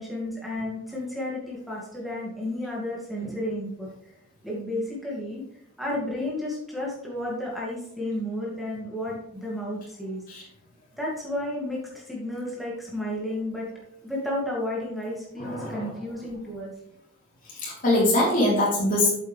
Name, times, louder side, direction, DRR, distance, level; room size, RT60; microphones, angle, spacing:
voice 1, 0.0-3.9 4.4-5.4 5.8-10.2 11.0-13.7 14.0-16.7, left 1 dB, ahead, -5 dB, 2.5 m, -32 dB
voice 2, 15.4-15.9 17.5-19.2, left 1 dB, 40° left, -5 dB, 3.6 m, -23 dB
8.2 x 7.8 x 3.4 m, 0.76 s
head